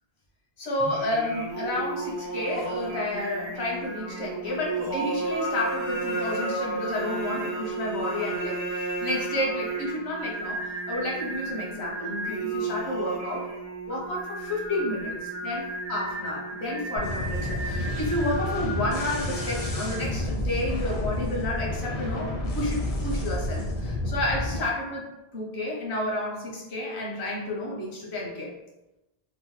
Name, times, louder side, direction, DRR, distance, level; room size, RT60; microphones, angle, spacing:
voice 1, 0.6-13.5 13.9-25.1 25.3-28.5, left 1 dB, 80° left, -2 dB, 1.1 m, -31 dB
Singing, 0.8-20.4, right 2 dB, 35° right, 0.5 m, -33 dB
sound 1, 17.0-24.6, left 1 dB, 45° left, 0.5 m, -30 dB
3.0 x 2.0 x 3.0 m, 0.96 s
omnidirectional pair, 1.1 m